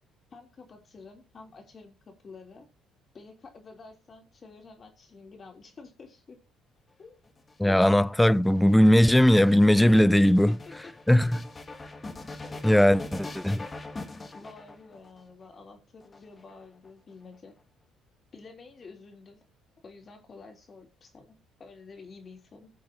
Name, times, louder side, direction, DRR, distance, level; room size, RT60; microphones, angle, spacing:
voice 1, 0.3-2.7 3.1-6.4 7.0-7.1 7.6-7.8 10.5-10.9 12.4-12.9 14.3-17.5 18.3-19.4 19.8-22.7, left 4 dB, 45° left, 3.1 m, -49 dB
sound 1, 7.3-15.2 16.0-16.9, left 2 dB, 30° left, 2.0 m, -42 dB
voice 2, 7.6-10.6 11.1-11.5 12.6-13.7, left 1 dB, 5° left, 0.4 m, -19 dB
18.5 x 6.2 x 2.8 m
hypercardioid pair, 60°, 0 cm